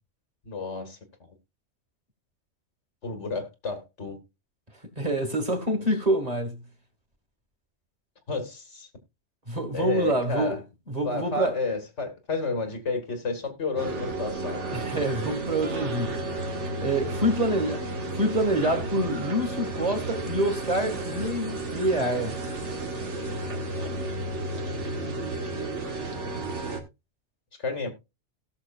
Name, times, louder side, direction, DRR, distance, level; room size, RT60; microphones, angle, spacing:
voice 1, 0.4-1.0 3.0-4.2 8.3-8.9 9.7-10.6 11.0-14.6 26.1-26.2 27.6-27.9, left 3 dB, 90° left, 2.2 m, -31 dB
voice 2, 5.0-6.6 9.5-10.6 10.9-11.5 14.7-16.2 16.8-17.8 18.1-22.4, right 1 dB, 35° right, 2.1 m, -26 dB
sound 1, 13.8-26.8, right 2 dB, 85° right, 1.9 m, -32 dB
17.5 x 6.4 x 2.4 m
omnidirectional pair, 1.2 m